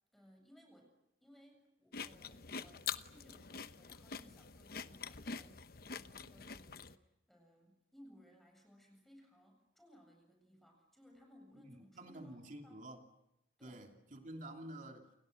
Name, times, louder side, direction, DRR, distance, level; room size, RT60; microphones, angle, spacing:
voice 1, 0.1-0.9 1.2-12.9 13.6-13.8, equal, ahead, 2 dB, 7.5 m, -63 dB
sound 1, 1.9-7.0, left 6 dB, 55° left, 1.0 m, -45 dB
voice 2, 11.6-13.0 13.6-15.1, right 1 dB, 45° right, 3 dB, 3.0 m, -50 dB
29.0 x 29.0 x 6.6 m, 0.86 s
head